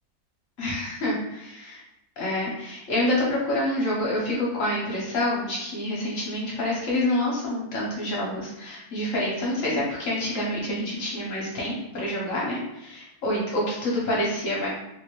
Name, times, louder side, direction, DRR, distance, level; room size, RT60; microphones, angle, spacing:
voice 1, 0.6-1.8 2.2-14.7, left 1 dB, 55° left, -5 dB, 1.0 m, -27 dB
3.1 x 2.6 x 3.0 m, 0.85 s
omnidirectional pair, 2.0 m